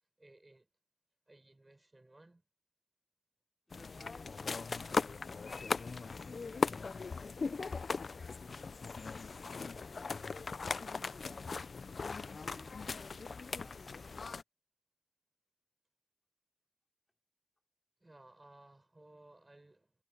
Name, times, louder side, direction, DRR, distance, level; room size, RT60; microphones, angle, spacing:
voice 1, 0.2-0.7 1.3-2.4 18.0-19.9, right 2 dB, 35° right, 4.3 m, -59 dB
sound 1, 3.7-14.4, left 4 dB, 85° left, 0.4 m, -39 dB
voice 2, 3.7-7.5 8.1-9.2 9.7-11.2 11.8-14.3, left 2 dB, 35° left, 4.4 m, -62 dB
cardioid pair, 45°, 0 cm